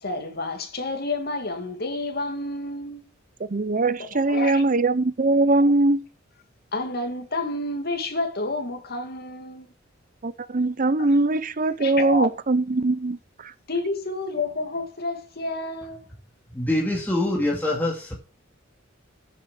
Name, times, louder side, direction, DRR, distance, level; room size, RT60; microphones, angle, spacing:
voice 1, 0.0-3.0 4.1-4.6 6.7-9.7 11.8-12.3 13.7-16.0, left 2 dB, 50° left, 2.4 m, -29 dB
voice 2, 3.5-6.0 10.2-13.2 13.4-13.5, right 2 dB, 40° right, 0.7 m, -21 dB
voice 3, 16.5-18.1, left 1 dB, 10° left, 2.3 m, -24 dB
9.7 x 7.5 x 6.1 m
head